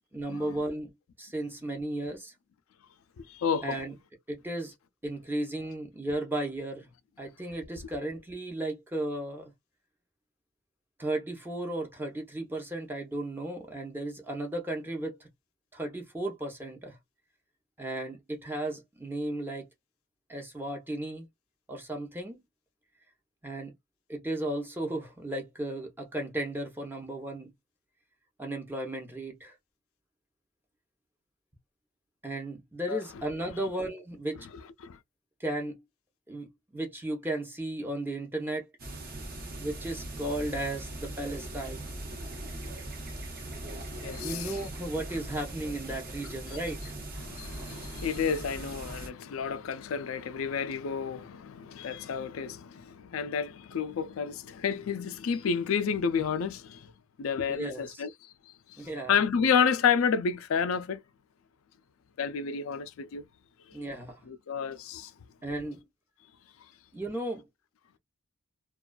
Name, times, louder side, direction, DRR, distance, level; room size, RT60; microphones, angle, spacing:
voice 1, 0.1-0.9 1.2-2.3 3.6-3.9 4.3-4.7 5.0-6.9 7.2-9.5 11.0-15.3 15.7-17.0 17.8-19.7 20.3-21.3 21.7-22.4 23.4-23.7 24.1-27.5 28.4-29.5 32.2-34.5 35.4-35.8 36.3-38.7 39.6-41.9 44.2-46.9 57.5-58.0 58.8-59.1 63.7-64.2 65.4-65.9 66.9-67.4, right 1 dB, 10° right, 0.6 m, -35 dB
voice 2, 3.3-3.8 32.9-33.0 34.8-35.0 44.0-44.6 46.5-46.6 47.2-56.9 57.2-58.1 59.1-61.0 62.2-63.2 64.3-65.1, left 6 dB, 85° left, 0.4 m, -30 dB
sound 1, 38.8-49.1, right 1 dB, 45° right, 0.9 m, -40 dB
2.4 x 2.3 x 2.2 m
head